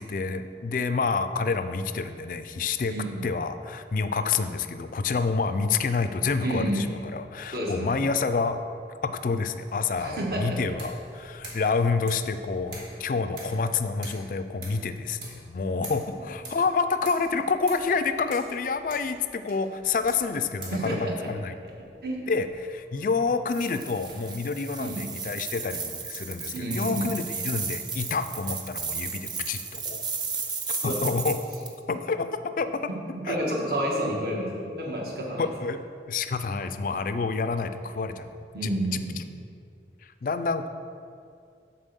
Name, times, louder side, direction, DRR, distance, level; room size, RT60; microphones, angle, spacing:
voice 1, 0.0-2.9 3.2-6.9 7.1-8.6 9.0-21.5 22.3-30.0 30.7-31.4 31.9-32.3 32.6-32.8 33.3-33.4 35.4-35.8 36.1-38.7 40.2-40.7, left 4 dB, 50° left, 10 dB, 0.3 m, -28 dB
voice 2, 2.9-3.2 6.4-6.9 7.5-8.0 10.0-10.6 16.1-16.3 20.7-21.3 22.0-22.2 24.8-25.0 26.5-27.1 30.8-30.9 33.1-35.5 38.5-39.2, right 1 dB, 55° right, -3 dB, 1.6 m, -29 dB
sound 1, 9.5-24.1, right 2 dB, 80° right, 1.9 m, -48 dB
sound 2, 23.5-31.7, right 5 dB, 25° right, 0.5 m, -34 dB
7.1 x 4.4 x 6.8 m, 2.4 s
head